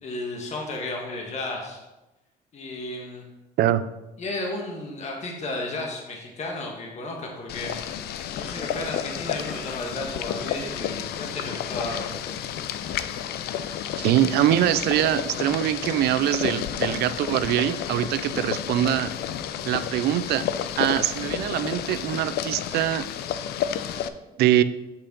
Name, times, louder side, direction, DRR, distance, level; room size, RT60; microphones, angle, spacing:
voice 1, 0.0-1.8 2.5-3.2 4.2-7.8 8.3-12.4, left 2 dB, 40° left, 0 dB, 1.6 m, -33 dB
Boiling, 7.5-24.1, left 9 dB, 70° left, 0.5 m, -31 dB
voice 2, 14.0-19.1 19.7-20.5 20.8-23.1 24.4-24.6, right 12 dB, 75° right, 14 dB, 0.5 m, -23 dB
8.0 x 6.5 x 3.9 m, 1.0 s
cardioid pair, 110°, 17 cm